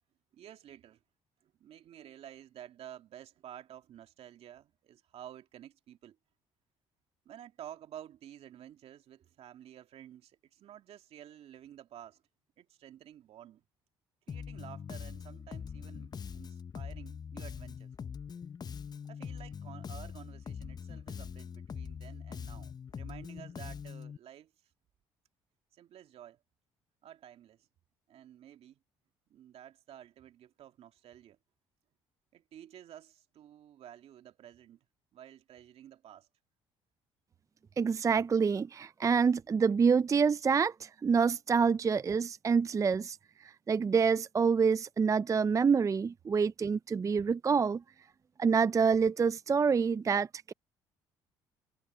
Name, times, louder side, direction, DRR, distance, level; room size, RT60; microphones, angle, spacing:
voice 1, 0.3-1.0 1.4-6.2 7.3-12.2 12.6-13.6 14.3-17.9 19.1-24.5 25.7-26.4 27.0-27.7 28.1-28.8 29.3-31.4 32.3-34.8 35.1-36.3, right 11 dB, 65° right, 2.3 m, -51 dB
Bass guitar, 14.3-24.2, left 7 dB, 35° left, 0.7 m, -43 dB
voice 2, 37.8-47.8 48.4-50.5, right 5 dB, 30° right, 0.4 m, -27 dB
supercardioid pair, 70°, 11 cm